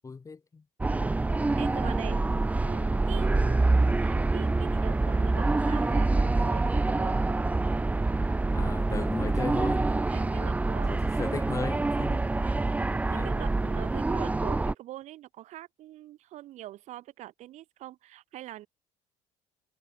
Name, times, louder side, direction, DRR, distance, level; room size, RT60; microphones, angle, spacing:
voice 1, 0.0-0.6 1.5-1.9 8.5-9.9 10.4-10.5 10.9-12.6 13.1-13.3, left 4 dB, 25° left, 1.6 m, -37 dB
sound 1, 0.8-14.7, right 2 dB, 10° right, 0.5 m, -26 dB
voice 2, 1.6-2.2 2.6-7.4 9.2-9.4 10.1-11.3 12.3-12.6 12.9-18.7, right 14 dB, 65° right, 3.5 m, -44 dB
supercardioid pair, 80°, 13 cm